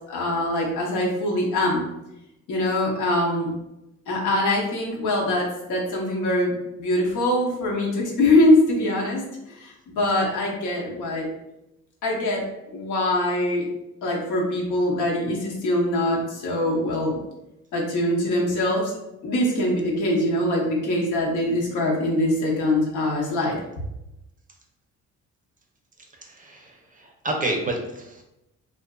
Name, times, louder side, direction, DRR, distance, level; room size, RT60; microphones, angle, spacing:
voice 1, 0.0-1.9 2.5-3.5 4.1-6.5 6.8-9.2 9.6-11.2 12.0-12.4 12.7-13.6 14.0-17.2 17.7-18.9 19.2-23.6, left 1 dB, 80° left, -2 dB, 0.8 m, -23 dB
voice 2, 26.2-28.2, right 2 dB, 30° right, 2 dB, 0.5 m, -30 dB
2.5 x 2.5 x 2.2 m, 0.89 s
cardioid pair, 90°, 30 cm